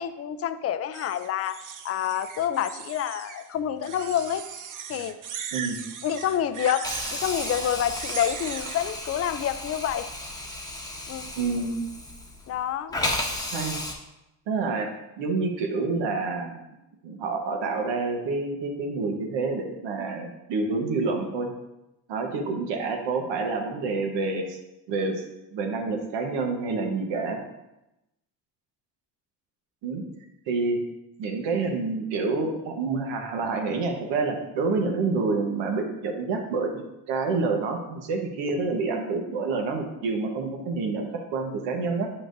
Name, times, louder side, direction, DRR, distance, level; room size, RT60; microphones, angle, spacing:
voice 1, 0.0-1.6 1.8-4.4 4.9-5.2 6.0-10.1 11.1-11.3 12.5-12.9, left 10 dB, 35° left, 11 dB, 0.4 m, -28 dB
sound 1, 0.9-3.5 3.8-8.9, right 7 dB, 45° right, 0.6 m, -38 dB
Hiss, 6.8-12.6 12.9-13.9, left 1 dB, 10° left, 0.9 m, -34 dB
voice 2, 11.4-11.8 13.5-13.8 14.5-14.9 15.2-16.6 17.0-21.5 22.1-24.6 24.9-25.2 25.5-27.4 29.8-30.0 30.5-30.8 31.2-42.1, right 3 dB, 80° right, 3 dB, 1.2 m, -28 dB
8.3 x 5.8 x 2.6 m, 0.93 s
cardioid pair, 120°, 43 cm